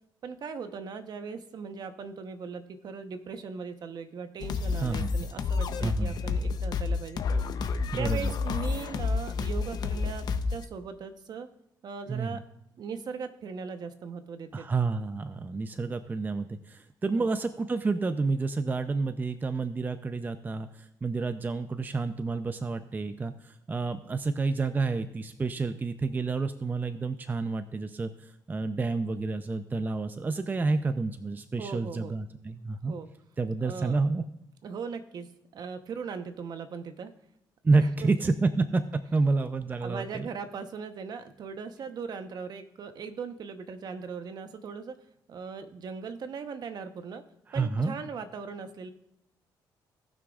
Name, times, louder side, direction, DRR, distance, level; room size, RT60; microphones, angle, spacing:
voice 1, 0.2-7.2 8.0-11.5 11.8-12.4 12.8-14.7 17.1-17.3 31.6-32.1 32.9-33.1 33.6-34.0 34.6-37.1 37.8-38.1 39.8-45.0 45.3-47.2 47.5-48.9, right 5 dB, 55° right, 8 dB, 0.9 m, -39 dB
sound 1, 4.4-10.6, left 4 dB, 60° left, 0.8 m, -30 dB
voice 2, 4.8-5.1 5.8-6.1 7.9-8.3 12.1-12.4 14.5-32.9 33.4-34.2 37.6-38.8 39.1-40.3 47.5-47.9, right 3 dB, 25° right, 9 dB, 0.5 m, -29 dB
18.5 x 6.1 x 2.4 m, 0.82 s
cardioid pair, 110°, 8 cm